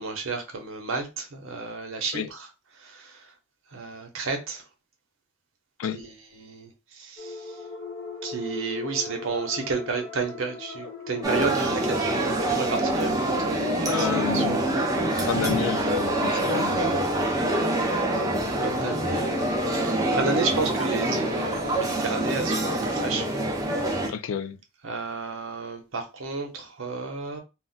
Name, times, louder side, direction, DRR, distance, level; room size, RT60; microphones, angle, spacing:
voice 1, 0.0-2.5 2.8-3.3 3.7-4.6 5.9-7.6 8.2-14.4 18.5-19.4 19.8-23.2 24.8-27.4, right 4 dB, 65° right, 0.7 m, -32 dB
sound 1, 7.2-21.7, left 2 dB, 40° left, 1.0 m, -38 dB
sound 2, 11.2-24.1, right 1 dB, 15° right, 0.5 m, -25 dB
voice 2, 13.9-14.6 15.2-17.0 24.1-24.6, left 7 dB, 70° left, 0.3 m, -30 dB
2.4 x 2.1 x 3.8 m
head